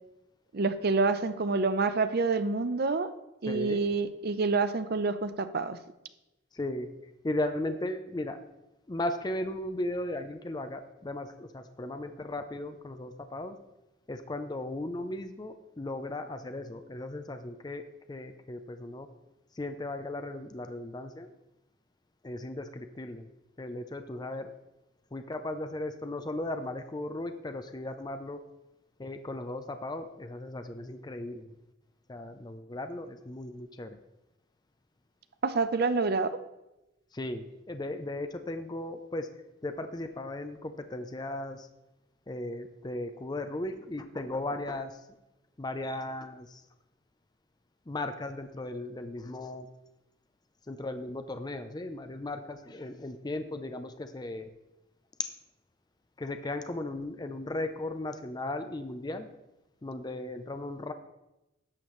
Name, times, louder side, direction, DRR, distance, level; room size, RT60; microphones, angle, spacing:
voice 1, 0.5-3.1 3.4-5.8 35.4-36.4, right 4 dB, 55° right, 11 dB, 0.6 m, -27 dB
voice 2, 3.5-3.8 6.5-6.9 7.2-8.4 8.9-13.6 14.1-17.8 18.1-19.1 19.5-21.3 22.2-23.3 23.6-24.5 25.1-28.4 29.0-31.6 32.1-34.0 37.1-39.3 39.6-41.7 42.3-45.0 45.6-46.6 47.9-49.7 50.7-54.5 56.2-59.3 59.8-60.9, left 1 dB, 20° left, 8 dB, 0.5 m, -36 dB
11.5 x 6.8 x 3.1 m, 0.95 s
head